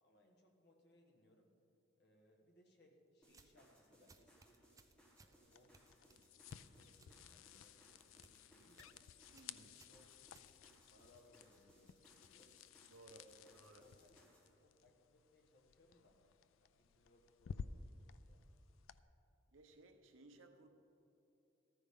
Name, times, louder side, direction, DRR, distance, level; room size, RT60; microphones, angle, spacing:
voice 1, 0.0-1.5 2.0-4.6 5.2-8.9 9.6-12.6 13.1-14.3 14.6-16.2 16.6-18.5, left 1 dB, 55° left, 1.4 m, -70 dB
sound 1, 3.2-14.5, equal, 5° left, 1.4 m, -70 dB
sound 2, 3.3-3.7 4.1-5.4 5.7-7.2 7.5-7.8 8.1-8.4 8.7-9.0 9.3-10.9, right 4 dB, 15° right, 0.4 m, -67 dB
sound 3, 5.4-19.0, left 6 dB, 85° left, 0.4 m, -56 dB
voice 2, 9.3-9.8 12.9-13.3 13.5-13.9 19.5-20.7, right 2 dB, 85° right, 1.0 m, -61 dB
14.0 x 13.5 x 3.7 m
head